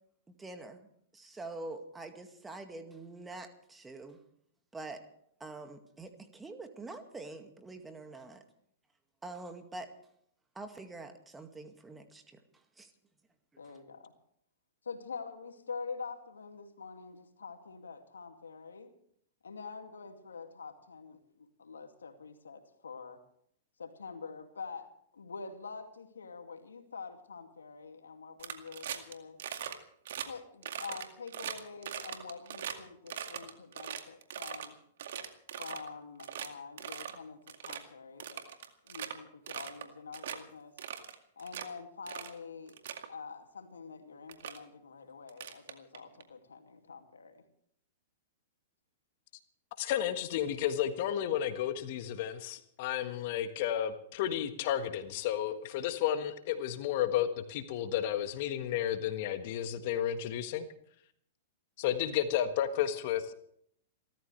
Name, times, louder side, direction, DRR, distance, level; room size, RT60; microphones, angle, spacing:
voice 1, 0.4-0.8 1.1-4.2 4.7-5.1 5.4-8.4 9.2-9.9 10.6-12.9 13.6-13.7, right 2 dB, 10° right, 6 dB, 2.1 m, -45 dB
voice 2, 13.6-14.1 14.8-18.9 19.4-23.2 23.8-29.4 30.2-34.7 35.6-38.4 38.8-40.7 41.4-42.8 43.1-47.4, left 5 dB, 85° left, 5 dB, 2.4 m, -46 dB
sound 1, 28.4-29.1 29.4-29.8 30.1-30.3 30.6-32.8 33.1-34.7 35.0-35.9 36.2-36.5 36.8-37.2 37.5-37.8 38.2-39.1 39.5-39.9 40.1-40.4 40.8-41.7 42.1-42.3 42.7-43.1 43.9-44.0 44.3-44.6 45.3-46.2, right 9 dB, 65° right, 2.1 m, -40 dB
voice 3, 49.8-60.7 61.8-63.3, left 10 dB, 55° left, 9 dB, 1.5 m, -32 dB
28.5 x 13.5 x 3.4 m, 0.67 s
hypercardioid pair, 115°, 0 cm